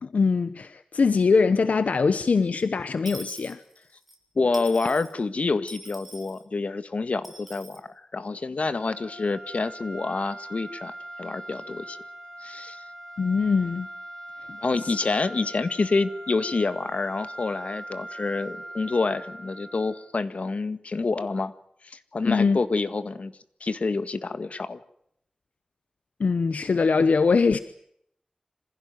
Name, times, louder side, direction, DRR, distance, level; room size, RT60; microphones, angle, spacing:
voice 1, 0.0-3.6 13.2-13.9 14.5-14.9 22.3-22.6 26.2-27.6, left 4 dB, 85° left, 13 dB, 0.9 m, -22 dB
Dishes pots and pans / Coin (dropping), 3.0-4.2 4.5-5.1 5.7-6.4 7.2-7.8, right 1 dB, 5° right, 7.3 m, -43 dB
voice 2, 4.4-7.8 8.1-12.0 12.4-12.8 14.6-21.5 21.8-23.3 23.6-24.8, left 3 dB, 65° left, 12 dB, 1.7 m, -27 dB
sound 1, 8.7-20.2, right 1 dB, 30° left, 7.5 m, -41 dB
26.0 x 16.0 x 9.4 m, 0.71 s
wide cardioid pair, 70°, 2 cm